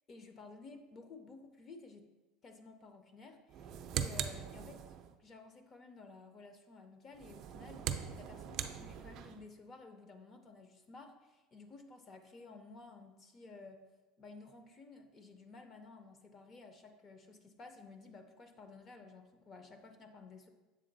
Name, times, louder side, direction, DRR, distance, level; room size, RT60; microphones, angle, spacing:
voice 1, 0.1-2.0 2.4-4.8 5.2-13.8 14.2-20.5, left 3 dB, 30° left, 7 dB, 0.5 m, -54 dB
sound 1, 3.5-5.1 7.1-9.4, right 9 dB, 45° right, 0.4 m, -41 dB
7.5 x 3.6 x 3.9 m, 1.1 s
cardioid pair, 150°, 0 cm